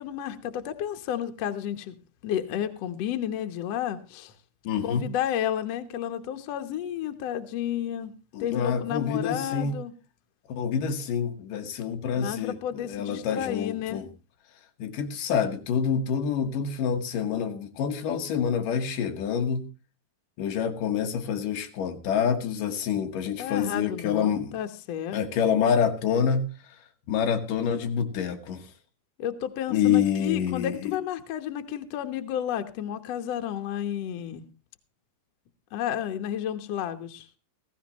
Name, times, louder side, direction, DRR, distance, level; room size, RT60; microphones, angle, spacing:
voice 1, 0.0-2.0 2.2-4.3 4.8-8.1 8.4-9.9 12.1-14.0 23.4-25.2 29.2-34.4 35.7-37.3, left 10 dB, 80° left, 1.4 m, -31 dB
voice 2, 4.6-5.1 8.3-9.8 10.5-14.1 14.8-19.7 20.4-24.6 25.1-26.5 27.1-28.7 29.7-31.0, left 7 dB, 65° left, 2.7 m, -27 dB
16.0 x 15.5 x 3.0 m
omnidirectional pair, 4.6 m